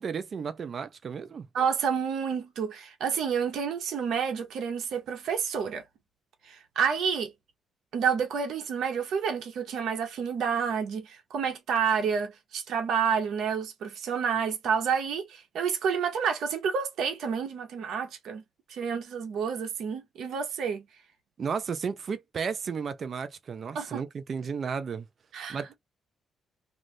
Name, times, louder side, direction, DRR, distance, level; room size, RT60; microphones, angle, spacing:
voice 1, 0.0-1.5 21.4-25.1 25.5-25.8, right 6 dB, 45° right, 0.5 m, -33 dB
voice 2, 1.5-5.8 6.4-7.3 7.9-18.4 18.7-20.8 23.7-24.0 25.3-25.6, right 6 dB, 75° right, 0.9 m, -29 dB
2.6 x 2.5 x 3.1 m
cardioid pair, 105°, 0 cm